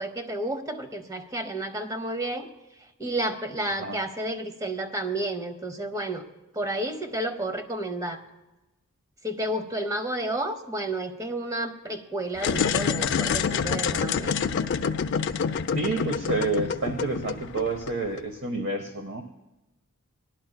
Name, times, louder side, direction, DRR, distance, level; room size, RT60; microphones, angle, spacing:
voice 1, 0.0-2.5 3.0-6.2 6.5-8.2 9.2-14.4, right 1 dB, 15° right, 8 dB, 0.7 m, -31 dB
sound 1, 12.4-18.2, left 6 dB, 55° left, 0.4 m, -27 dB
voice 2, 15.7-19.2, right 3 dB, 55° right, 6 dB, 0.7 m, -29 dB
18.5 x 12.0 x 2.2 m, 1.0 s
head